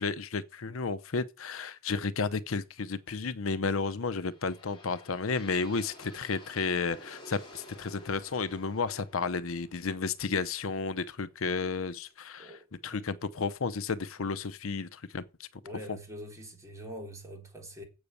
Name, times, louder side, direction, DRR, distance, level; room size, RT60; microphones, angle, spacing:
voice 1, 0.0-12.6 12.8-15.5 15.9-16.0, left 4 dB, 80° left, 0.7 m, -32 dB
sound 1, 3.8-11.6, left 1 dB, 20° left, 4.8 m, -52 dB
voice 2, 15.6-17.8, equal, 15° right, 3.5 m, -44 dB
8.0 x 6.7 x 8.3 m
head